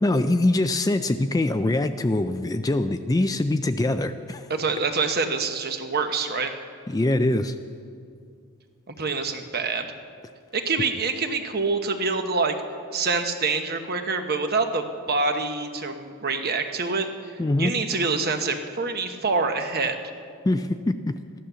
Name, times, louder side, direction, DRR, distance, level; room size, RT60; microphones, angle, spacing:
voice 1, 0.0-4.5 6.9-7.5 17.4-17.7 20.4-21.1, left 2 dB, 15° left, 9 dB, 0.3 m, -23 dB
voice 2, 4.5-6.5 8.9-9.9 10.5-12.6 12.9-20.0, right 4 dB, 45° right, 6 dB, 1.0 m, -26 dB
15.0 x 11.5 x 6.9 m, 2.3 s
head